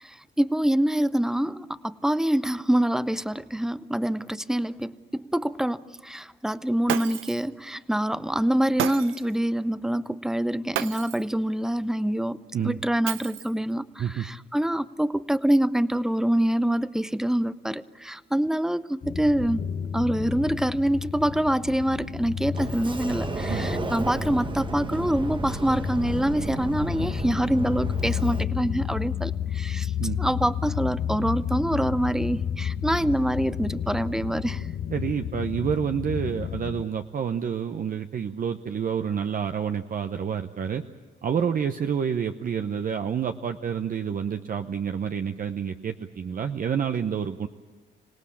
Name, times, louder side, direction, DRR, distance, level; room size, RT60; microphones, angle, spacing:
voice 1, 0.0-12.4 12.6-19.6 19.9-29.9 30.2-34.7, right 1 dB, 5° right, 15 dB, 0.7 m, -25 dB
Shatter, 6.9-7.5 8.8-9.4 10.7-11.3 13.1-13.7, right 12 dB, 85° right, 0.7 m, -31 dB
sound 1, 19.0-36.8, left 8 dB, 50° left, 1.0 m, -31 dB
Sliding door, 22.5-28.4, right 3 dB, 25° right, 1.1 m, -33 dB
voice 2, 34.9-40.8 41.2-47.5, right 7 dB, 45° right, 6 dB, 0.8 m, -28 dB
26.0 x 18.0 x 8.5 m, 1.3 s
cardioid pair, 90°, 20 cm